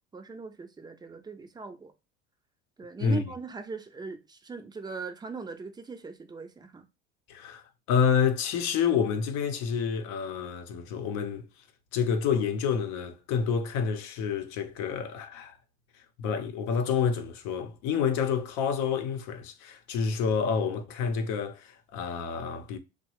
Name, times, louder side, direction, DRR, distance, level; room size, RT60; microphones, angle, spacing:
voice 1, 0.1-1.9 2.8-6.9, right 4 dB, 15° right, 0.5 m, -40 dB
voice 2, 7.3-7.6 7.9-11.5 11.9-15.5 16.2-22.8, left 6 dB, 60° left, 0.7 m, -28 dB
3.0 x 2.2 x 2.9 m
hypercardioid pair, 85°, 32 cm